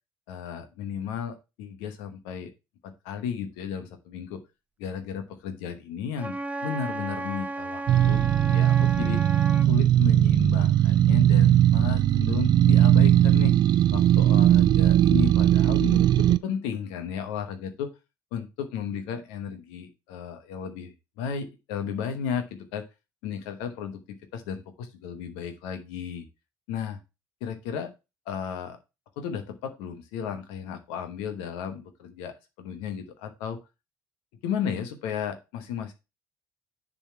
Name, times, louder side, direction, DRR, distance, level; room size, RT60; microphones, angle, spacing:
voice 1, 0.3-2.5 2.8-4.4 4.8-9.2 9.7-13.5 13.9-17.9 18.3-22.8 23.2-26.2 26.7-27.0 27.4-27.9 28.3-28.8 29.2-33.6 34.4-35.9, left 7 dB, 80° left, 8 dB, 1.1 m, -34 dB
Wind instrument woodwind instrument, 6.2-9.7, right 2 dB, 15° right, 0.8 m, -34 dB
sound 1, 7.9-16.4, right 12 dB, 55° right, 0.4 m, -19 dB
7.0 x 4.0 x 5.8 m, 0.26 s
hypercardioid pair, 60°, 9 cm